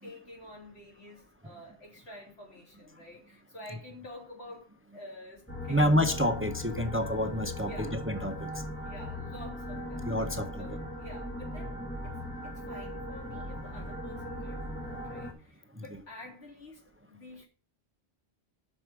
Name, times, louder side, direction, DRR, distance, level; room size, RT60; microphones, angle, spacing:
voice 1, 0.0-6.0 7.6-8.0 8.8-11.8 12.0-12.2 12.4-17.5, left 1 dB, 90° left, 3.8 m, -49 dB
sound 1, 5.5-15.3, left 1 dB, 10° left, 1.4 m, -39 dB
voice 2, 5.7-8.6 10.0-10.7, equal, 15° right, 0.7 m, -28 dB
8.6 x 6.3 x 5.9 m
omnidirectional pair, 1.1 m